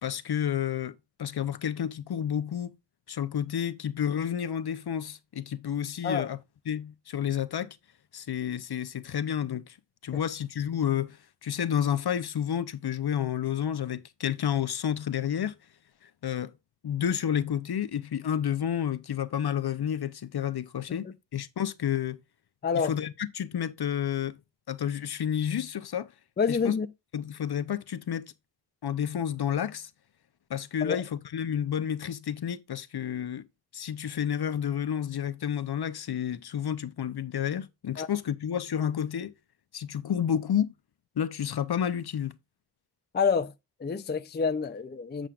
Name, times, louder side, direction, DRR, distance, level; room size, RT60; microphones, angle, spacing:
voice 1, 0.0-2.7 3.1-6.4 6.7-7.7 8.1-9.8 10.0-15.6 16.0-16.5 16.8-22.2 22.8-24.4 24.7-26.1 26.5-26.7 27.1-28.3 28.8-29.9 30.5-33.5 33.7-39.3 39.7-40.7 41.2-42.3, left 9 dB, 60° left, 0.7 m, -30 dB
voice 2, 22.6-23.0 26.4-26.9 30.8-31.0 38.0-38.1 43.1-43.5 43.8-45.3, left 5 dB, 25° left, 0.4 m, -28 dB
8.1 x 7.5 x 2.4 m
wide cardioid pair, 170°, 43 cm